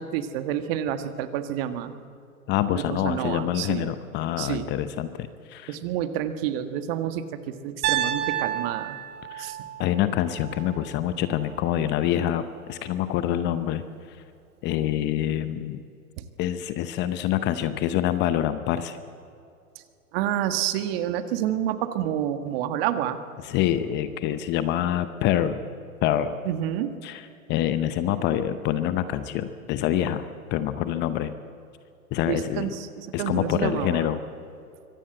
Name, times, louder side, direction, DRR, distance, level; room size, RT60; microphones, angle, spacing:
voice 1, 0.0-2.0 2.7-3.9 4.4-4.7 5.7-9.0 9.4-9.6 16.2-16.3 20.1-23.2 26.4-26.9 32.3-34.2, right 11 dB, 40° right, 10 dB, 1.6 m, -29 dB
voice 2, 2.5-5.8 9.3-9.5 9.8-13.8 14.6-15.8 16.4-19.0 23.4-25.6 26.0-26.4 27.0-27.2 27.5-30.3 30.5-31.3 32.1-32.7 33.1-34.2, left 11 dB, 25° left, 12 dB, 0.8 m, -26 dB
Piano, 7.8-11.9, right 11 dB, 25° right, 1.5 m, -31 dB
24.0 x 18.0 x 7.9 m, 2.6 s
hypercardioid pair, 125°, 43 cm